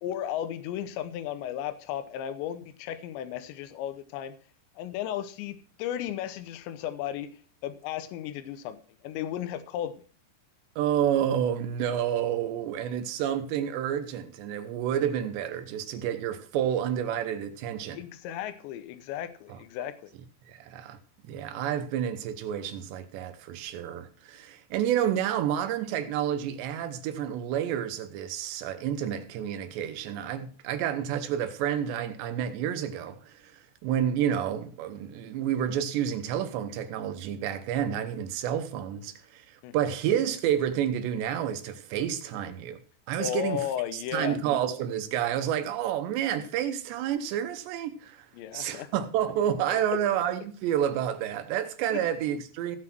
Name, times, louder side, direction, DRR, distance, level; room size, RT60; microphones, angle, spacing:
voice 1, 0.0-4.3 4.8-9.9 17.9-20.1 39.6-39.8 43.2-44.4 48.3-48.9 49.7-49.8 51.9-52.0, left 10 dB, 90° left, 3.1 m, -35 dB
voice 2, 10.8-18.0 19.5-19.6 20.5-21.0 21.3-33.5 33.8-42.8 43.1-43.7 43.9-48.3 48.5-52.8, right 10 dB, 85° right, 3.2 m, -29 dB
16.0 x 6.0 x 6.0 m
omnidirectional pair, 5.0 m